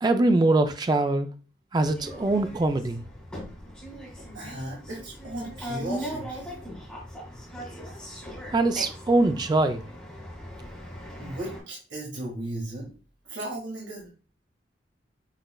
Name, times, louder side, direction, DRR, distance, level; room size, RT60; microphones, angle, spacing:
voice 1, 0.0-1.3 1.7-3.0 8.5-9.9, right 2 dB, 20° right, 0.3 m, -23 dB
sound 1, 1.8-11.6, equal, 5° left, 1.8 m, -39 dB
voice 2, 2.1-2.4 4.3-6.6 11.2-12.9 13.2-14.1, right 1 dB, 70° right, 1.5 m, -36 dB
6.5 x 3.1 x 2.2 m
head